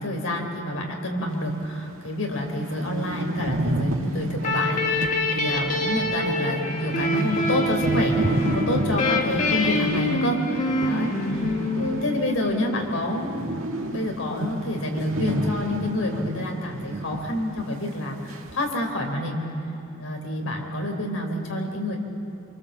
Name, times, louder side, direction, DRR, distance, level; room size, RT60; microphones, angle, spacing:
voice 1, 0.0-11.4 11.7-19.5 20.0-22.0, left 1 dB, 85° left, 2 dB, 4.0 m, -28 dB
sound 1, 1.6-1.7 2.0-2.1 2.3-12.5 12.8-17.3 17.6-17.7 18.3-18.7, right 1 dB, 85° right, 1.8 m, -30 dB
sound 2, 4.4-12.9, left 1 dB, 40° left, 2.1 m, -26 dB
26.5 x 24.0 x 7.6 m, 2.9 s
head